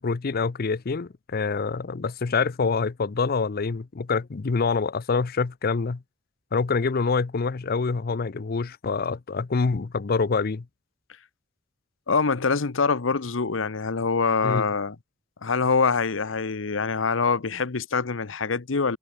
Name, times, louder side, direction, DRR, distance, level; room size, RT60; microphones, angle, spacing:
voice 1, 0.0-6.0 6.5-10.6 14.4-14.7, left 4 dB, 50° left, 0.6 m, -26 dB
voice 2, 12.1-15.0 15.4-19.0, left 4 dB, 90° left, 0.9 m, -24 dB
head